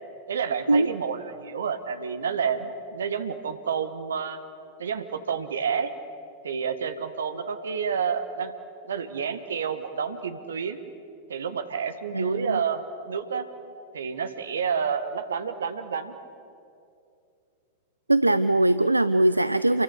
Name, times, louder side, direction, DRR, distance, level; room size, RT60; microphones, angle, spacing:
voice 1, 0.3-4.4 4.8-5.9 6.4-8.5 8.9-10.8 11.3-13.5 13.9-16.1, right 6 dB, 65° right, 10 dB, 1.7 m, -29 dB
voice 2, 12.1-12.6 18.1-19.8, right 2 dB, 85° right, 14 dB, 0.5 m, -21 dB
28.0 x 23.5 x 8.0 m, 2.6 s
figure-of-eight pair, 90°, 0 cm